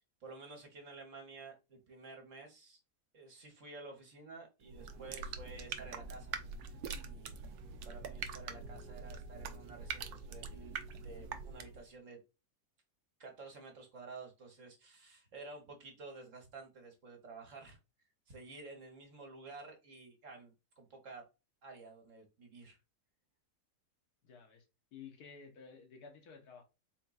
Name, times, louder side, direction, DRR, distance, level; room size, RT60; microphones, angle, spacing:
voice 1, 0.2-2.8 3.1-6.4 6.6-7.5 7.8-10.8 11.0-12.2 13.2-17.8 18.3-21.2 21.6-22.8, right 3 dB, 55° right, 1.5 m, -52 dB
sound 1, 4.6-11.9, right 5 dB, 75° right, 1.1 m, -44 dB
voice 2, 24.2-24.6 24.9-26.6, left 6 dB, 70° left, 1.5 m, -53 dB
4.3 x 3.8 x 2.3 m
omnidirectional pair, 1.7 m